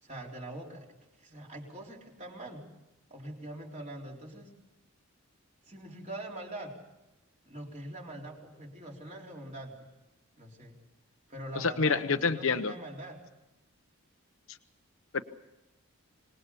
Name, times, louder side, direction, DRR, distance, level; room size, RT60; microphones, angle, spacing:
voice 1, 0.0-0.9 1.2-2.7 3.1-4.5 5.7-6.8 7.4-9.8 10.4-10.8 11.3-13.2, right 1 dB, 30° right, 0 dB, 3.9 m, -43 dB
voice 2, 11.5-12.7 14.5-14.6 15.1-15.2, left 4 dB, 65° left, 8 dB, 0.9 m, -28 dB
26.0 x 20.0 x 6.9 m, 0.99 s
head